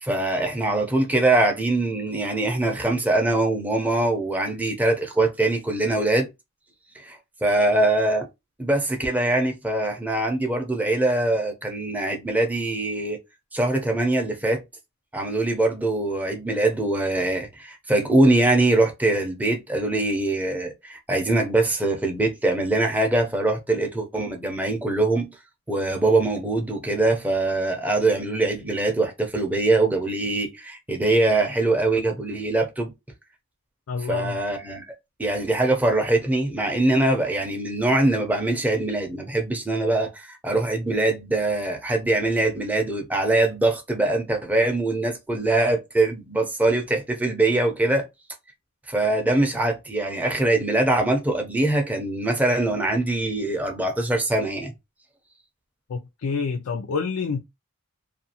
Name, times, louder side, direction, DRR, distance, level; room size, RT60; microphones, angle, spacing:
voice 1, 0.0-6.3 7.0-8.3 8.6-13.2 13.5-14.6 15.1-25.3 25.7-32.9 34.1-34.9 35.2-48.1 48.9-54.7, right 2 dB, 5° right, 0.5 m, -23 dB
voice 2, 33.9-34.4 55.9-57.4, left 5 dB, 85° left, 0.4 m, -28 dB
2.5 x 2.3 x 2.8 m
head